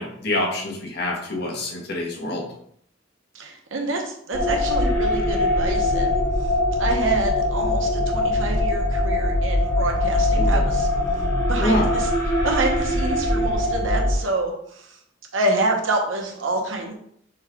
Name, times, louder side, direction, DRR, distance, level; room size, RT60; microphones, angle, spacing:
voice 1, 0.0-2.4 10.4-10.6 11.6-11.9, left 1 dB, 55° left, -1 dB, 1.1 m, -26 dB
voice 2, 3.3-10.9 11.4-12.1 12.4-15.0 15.3-16.9, right 2 dB, 85° right, 1 dB, 1.0 m, -27 dB
sound 1, 4.3-14.2, left 1 dB, 15° left, 1.0 m, -22 dB
6.3 x 2.4 x 3.5 m, 0.67 s
head